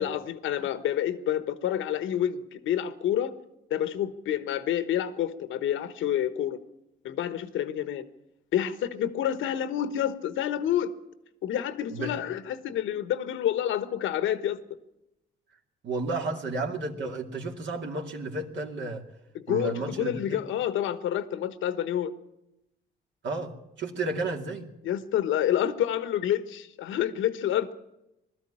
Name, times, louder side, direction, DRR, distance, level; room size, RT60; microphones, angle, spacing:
voice 1, 0.0-3.3 3.7-6.6 7.0-8.0 8.5-10.9 11.4-14.6 19.3-22.1 24.8-27.7, left 10 dB, 85° left, 13 dB, 1.3 m, -28 dB
voice 2, 15.8-19.1 19.5-20.4 23.2-23.5 23.8-24.7, right 3 dB, 65° right, 1 dB, 2.5 m, -32 dB
20.0 x 13.0 x 10.0 m, 0.89 s
cardioid pair, 90°, 20 cm